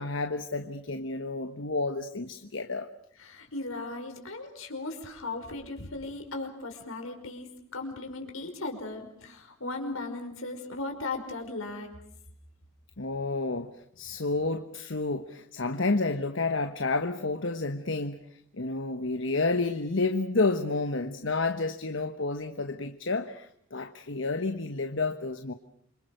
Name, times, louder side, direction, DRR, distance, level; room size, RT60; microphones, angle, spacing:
voice 1, 0.0-2.9 13.0-18.2 18.5-25.5, left 3 dB, 60° left, 8 dB, 1.2 m, -30 dB
voice 2, 3.2-11.9, left 2 dB, 80° left, 4 dB, 5.3 m, -37 dB
27.5 x 25.5 x 6.7 m, 0.68 s
head